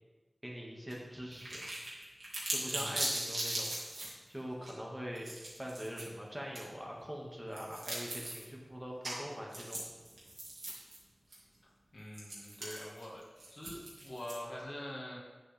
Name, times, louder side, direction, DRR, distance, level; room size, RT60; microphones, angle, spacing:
voice 1, 0.4-1.7 2.5-3.7 4.3-5.3 5.6-9.9, equal, 15° right, -2 dB, 2.0 m, -43 dB
sound 1, 0.9-1.0 1.3-4.1 4.6-4.7 5.2-6.0 6.6-6.7 7.5-8.4 9.0-9.2 9.5-11.0 11.3-11.4 12.1-14.6, right 1 dB, 80° right, 2.7 m, -39 dB
voice 2, 2.7-3.0 11.9-13.2 13.5-15.2, left 1 dB, 60° left, -4 dB, 2.1 m, -44 dB
8.9 x 7.8 x 3.6 m, 1.3 s
wide cardioid pair, 45°, 0 cm